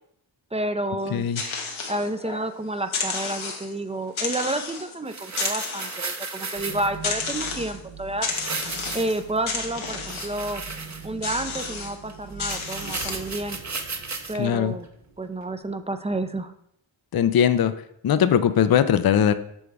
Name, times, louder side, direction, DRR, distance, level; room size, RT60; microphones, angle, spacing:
voice 1, 0.5-1.3 1.9-8.3 8.9-10.6 11.0-13.6 14.3-14.9 15.2-16.5, right 2 dB, 15° right, 10 dB, 0.5 m, -30 dB
sound 1, 1.0-2.5 2.8-3.8 4.2-5.0 5.3-6.3 7.0-7.8 8.2-9.2 9.5-10.4 11.2-12.0 12.4-13.3, left 4 dB, 85° left, 1.1 m, -32 dB
voice 2, 1.1-1.4 14.4-14.8 17.1-17.7 18.0-19.3, left 9 dB, 50° left, 12 dB, 0.5 m, -20 dB
sound 2, 5.1-7.0 8.3-9.4 9.9-11.3 11.6-11.7 12.1-12.2 12.4-14.3 14.8-14.9, right 4 dB, 35° right, 0.8 m, -34 dB
sound 3, 6.5-15.8, right 4 dB, 75° right, 1.1 m, -43 dB
7.2 x 3.4 x 4.7 m, 0.74 s
cardioid pair, 45°, 47 cm